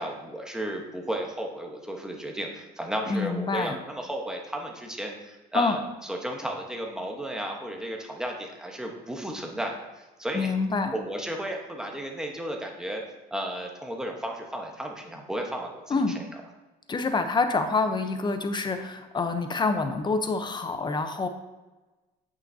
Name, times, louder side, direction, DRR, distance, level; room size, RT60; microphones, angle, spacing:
voice 1, 0.0-10.5 10.9-13.0 13.3-16.2, right 1 dB, 5° right, 1 dB, 1.1 m, -34 dB
voice 2, 3.1-3.8 5.5-5.8 10.3-10.9 15.9-16.1 16.9-21.3, left 4 dB, 25° left, 7 dB, 0.8 m, -26 dB
8.7 x 5.8 x 2.8 m, 1.1 s
cardioid pair, 110°, 17 cm